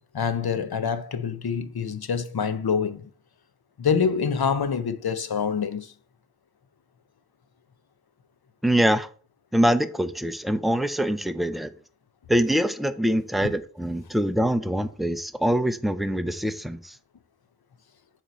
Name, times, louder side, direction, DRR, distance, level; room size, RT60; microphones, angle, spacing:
voice 1, 0.1-3.1 3.8-5.9 13.4-13.5, left 6 dB, 75° left, 0.7 m, -26 dB
voice 2, 8.6-9.1 9.5-11.7 12.3-16.8, equal, ahead, 0.5 m, -24 dB
8.0 x 3.1 x 4.1 m
wide cardioid pair, 60°, 38 cm